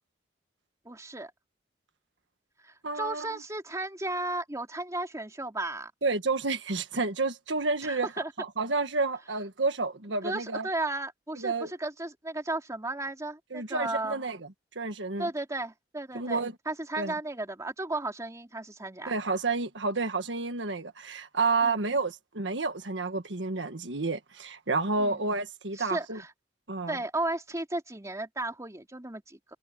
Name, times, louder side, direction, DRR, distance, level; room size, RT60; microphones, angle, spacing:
voice 1, 0.8-1.3 2.6-5.9 7.8-8.3 10.2-14.2 15.2-19.1 21.6-21.9 25.0-25.2 25.7-26.3 26.9-29.4, right 2 dB, 20° right, 3.1 m, -34 dB
voice 2, 2.8-3.4 6.0-8.1 8.4-10.7 11.4-11.7 13.5-14.4 14.8-15.3 16.1-16.5 17.0-17.1 19.1-26.2 26.7-27.0, right 3 dB, 85° right, 1.6 m, -30 dB
head